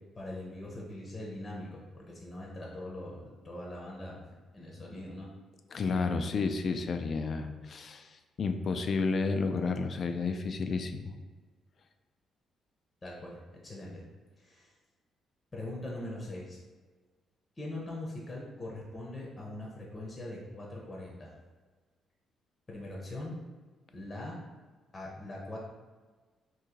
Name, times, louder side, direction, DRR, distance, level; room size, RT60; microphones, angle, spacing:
voice 1, 0.2-4.2 4.5-5.3 13.0-14.0 14.4-14.7 15.5-16.6 17.6-21.3 22.7-23.3 23.9-24.4 24.9-25.6, left 1 dB, 30° left, -3 dB, 0.7 m, -42 dB
voice 2, 5.7-11.1, left 4 dB, 50° left, 7 dB, 0.3 m, -31 dB
2.9 x 2.6 x 3.7 m, 1.4 s
cardioid pair, 90°, 0 cm